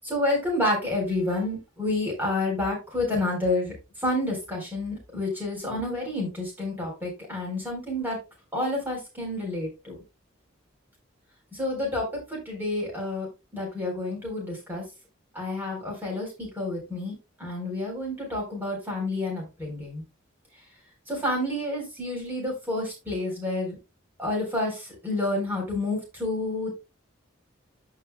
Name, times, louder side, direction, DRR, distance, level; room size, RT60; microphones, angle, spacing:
voice 1, 0.0-3.7 4.0-8.2 8.5-9.9 11.5-14.8 15.3-20.0 21.1-23.8 24.2-26.7, left 2 dB, 10° right, -1 dB, 3.9 m, -29 dB
14.0 x 4.9 x 2.2 m, 0.27 s
head